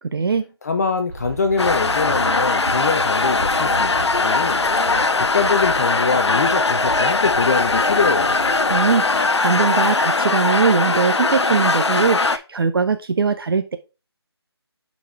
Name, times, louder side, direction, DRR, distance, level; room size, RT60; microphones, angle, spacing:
voice 1, 0.1-0.5 8.7-13.8, right 5 dB, 55° right, 0.5 m, -21 dB
voice 2, 0.6-4.6 5.2-8.3, left 5 dB, 35° left, 0.5 m, -23 dB
sound 1, 1.1-9.7, right 2 dB, 30° right, 2.8 m, -36 dB
sound 2, 1.6-12.4, left 3 dB, 85° left, 0.6 m, -20 dB
7.1 x 4.1 x 3.4 m
figure-of-eight pair, 155°, 14 cm